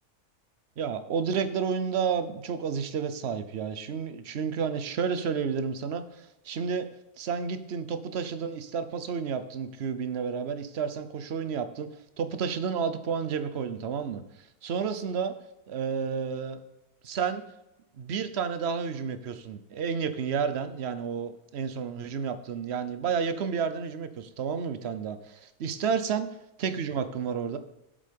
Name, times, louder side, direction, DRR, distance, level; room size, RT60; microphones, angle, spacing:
voice 1, 0.8-6.9 7.2-11.9 12.2-15.3 15.7-16.6 17.0-17.4 18.0-26.3 26.6-27.6, right 6 dB, 50° right, 10 dB, 0.9 m, -31 dB
8.2 x 7.5 x 5.2 m, 0.92 s
omnidirectional pair, 1.7 m